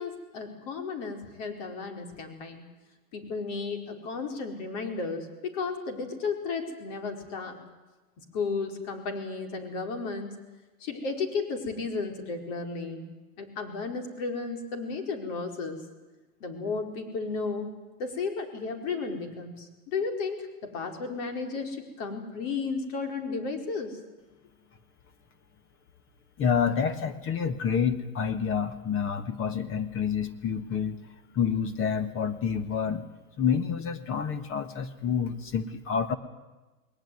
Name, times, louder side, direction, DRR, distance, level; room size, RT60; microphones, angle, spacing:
voice 1, 0.0-2.7 3.1-7.6 8.2-10.3 10.8-13.1 13.4-15.8 16.4-17.7 18.0-24.0, left 4 dB, 55° left, 5 dB, 4.9 m, -33 dB
voice 2, 26.4-31.0 31.3-33.0 33.4-36.2, left 7 dB, 30° left, 11 dB, 1.6 m, -28 dB
20.5 x 19.5 x 9.5 m, 1.1 s
hypercardioid pair, 130°, 45 cm